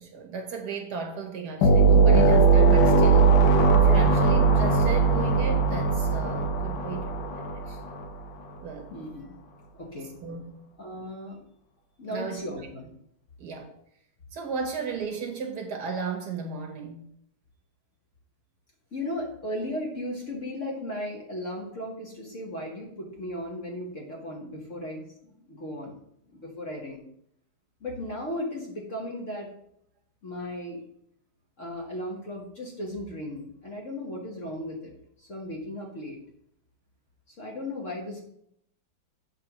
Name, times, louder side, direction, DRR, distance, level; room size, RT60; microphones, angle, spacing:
voice 1, 0.0-3.4 3.8-7.8 8.6-8.9 10.2-10.6 12.0-12.4 13.4-13.7 14.3-17.1, right 5 dB, 60° right, 1.4 m, -35 dB
sound 1, 1.6-8.1, right 4 dB, 85° left, 1.5 m, -19 dB
voice 2, 8.9-9.4 9.8-10.1 10.8-11.4 12.0-12.9 18.9-26.0 26.3-27.0 27.8-29.5 30.2-30.8 31.6-34.9 35.2-36.2 37.3-38.2, left 1 dB, 45° left, 1.4 m, -36 dB
8.2 x 3.3 x 5.9 m
omnidirectional pair, 2.1 m